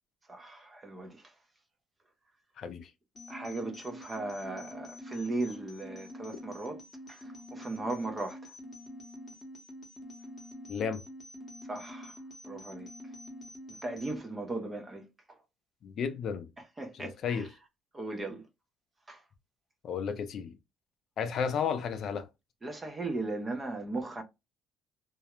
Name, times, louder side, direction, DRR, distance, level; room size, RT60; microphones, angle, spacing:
voice 1, 0.3-1.2 3.3-6.8 7.1-8.4 11.7-12.1 12.4-12.9 13.7-15.4 16.8-17.5 17.9-18.4 19.1-19.2 22.6-24.2, right 2 dB, 15° right, 0.5 m, -37 dB
voice 2, 2.6-2.9 10.7-11.0 15.8-16.5 16.9-17.5 19.8-20.6 21.2-22.3, left 6 dB, 45° left, 0.3 m, -33 dB
sound 1, 3.1-14.2, left 1 dB, 25° left, 0.8 m, -47 dB
2.3 x 2.0 x 2.9 m
cardioid pair, 165°, 0 cm